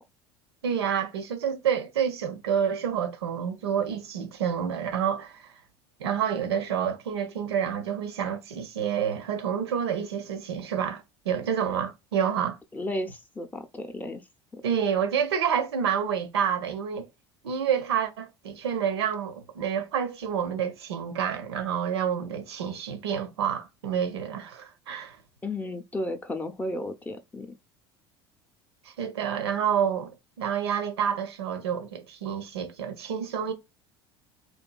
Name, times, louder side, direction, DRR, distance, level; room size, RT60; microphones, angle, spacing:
voice 1, 0.6-5.5 6.0-12.6 14.6-17.1 17.4-25.2 28.9-33.5, right 8 dB, 85° right, 0.5 m, -28 dB
voice 2, 12.7-14.2 14.5-14.6 25.4-27.5, left 1 dB, 10° left, 0.5 m, -33 dB
2.8 x 2.3 x 2.2 m
hypercardioid pair, 80°, 13 cm